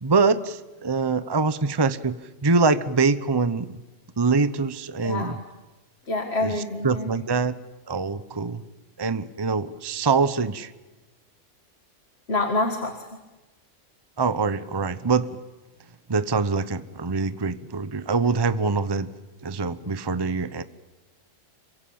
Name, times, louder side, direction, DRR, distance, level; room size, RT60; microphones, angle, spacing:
voice 1, 0.0-2.2 2.4-3.8 4.2-5.4 6.4-6.5 6.8-7.5 7.9-8.6 9.0-10.7 14.2-15.3 16.1-19.1 19.4-20.6, right 4 dB, 20° right, 13 dB, 0.9 m, -24 dB
voice 2, 5.0-5.4 6.1-7.1 12.3-13.1, left 2 dB, 55° left, 5 dB, 2.2 m, -26 dB
27.5 x 24.0 x 8.7 m, 1.1 s
omnidirectional pair, 1.3 m